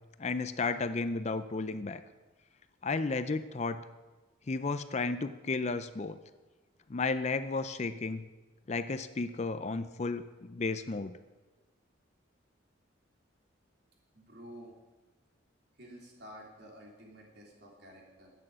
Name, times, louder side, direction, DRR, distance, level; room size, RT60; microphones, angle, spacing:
voice 1, 0.2-2.0 2.8-3.8 4.5-6.2 6.9-8.3 8.7-11.2, left 3 dB, 35° left, 11 dB, 0.5 m, -33 dB
voice 2, 14.1-14.8 15.8-18.3, equal, 55° right, -1 dB, 3.3 m, -51 dB
12.5 x 9.0 x 7.5 m, 1.2 s
head